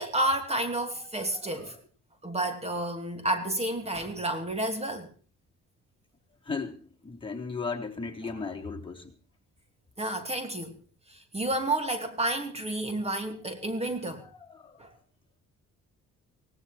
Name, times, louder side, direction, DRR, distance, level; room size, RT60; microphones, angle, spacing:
voice 1, 0.0-1.8 2.2-5.1 10.0-10.7 11.1-14.3 14.8-14.9, right 1 dB, 20° right, 2.7 m, -30 dB
voice 2, 0.9-1.7 6.4-9.1 13.6-14.8, left 4 dB, 15° left, 3.7 m, -38 dB
18.0 x 16.5 x 4.4 m
cardioid pair, 90°, 30 cm